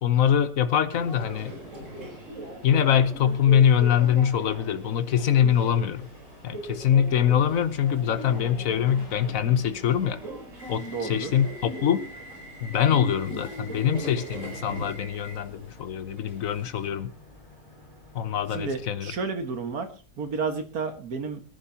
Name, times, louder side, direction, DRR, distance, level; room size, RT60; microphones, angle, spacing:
voice 1, 0.0-1.6 2.6-6.1 6.4-10.2 10.7-12.0 12.6-17.1 18.1-19.1, left 9 dB, 60° left, 1.3 m, -23 dB
sound 1, 0.7-19.0, left 1 dB, 30° left, 6.4 m, -52 dB
Subway metro underground, 0.9-16.9, right 2 dB, 50° right, 4.7 m, -40 dB
Bowed string instrument, 8.0-13.0, right 1 dB, 80° left, 3.9 m, -51 dB
voice 2, 10.9-11.3 18.5-19.9 20.2-21.4, right 4 dB, 65° right, 2.2 m, -31 dB
23.5 x 10.5 x 2.9 m
omnidirectional pair, 1.7 m